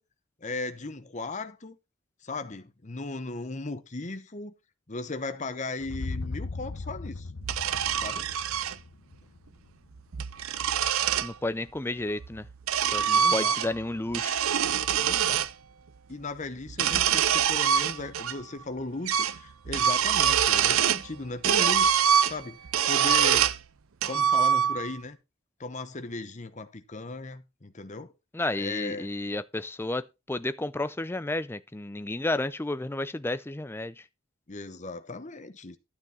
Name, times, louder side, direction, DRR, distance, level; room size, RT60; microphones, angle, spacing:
voice 1, 0.4-1.8 2.2-4.5 4.9-7.3 8.0-8.3 13.1-13.7 15.0-15.5 16.1-22.0 22.3-23.6 24.0-25.2 25.6-28.1 28.6-29.1 34.5-35.8, left 3 dB, 35° left, 1.0 m, -37 dB
sound 1, 5.8-9.9, left 3 dB, 65° left, 0.8 m, -38 dB
sound 2, 7.4-8.7 10.0-11.3 12.2-13.8 14.1-15.5 16.7-18.3 18.6-18.7 19.1-19.4 19.7-21.1 21.4-23.6 24.0-25.0, right 8 dB, 75° right, 0.6 m, -24 dB
voice 2, 11.2-12.5 12.9-14.5 28.3-33.9, left 2 dB, 10° left, 0.4 m, -32 dB
12.0 x 6.1 x 4.3 m
head